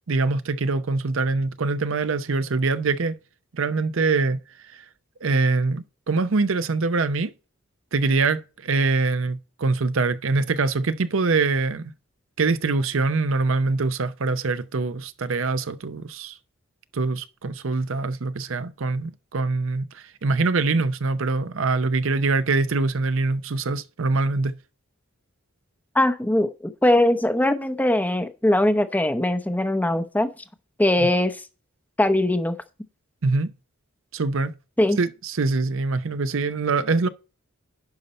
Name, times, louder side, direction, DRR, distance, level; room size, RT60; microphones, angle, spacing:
voice 1, 0.1-3.1 3.5-4.4 4.7-4.8 5.2-7.3 7.9-11.9 12.4-16.3 16.9-24.5 33.2-33.5 34.1-34.5 35.0-37.1, right 3 dB, 60° right, 0.6 m, -24 dB
voice 2, 25.9-30.3 30.8-31.4 32.0-32.6 34.8-35.0, left 1 dB, 10° left, 0.7 m, -21 dB
10.5 x 5.5 x 4.2 m
head